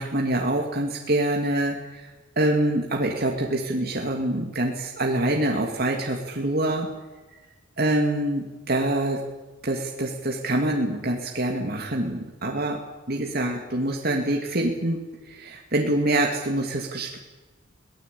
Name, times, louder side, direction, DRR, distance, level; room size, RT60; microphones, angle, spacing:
voice 1, 0.0-2.1 2.4-6.9 7.8-9.2 9.6-12.8 13.1-15.0 15.3-17.2, right 1 dB, 50° right, 0 dB, 2.7 m, -25 dB
24.0 x 18.5 x 8.6 m, 1.2 s
head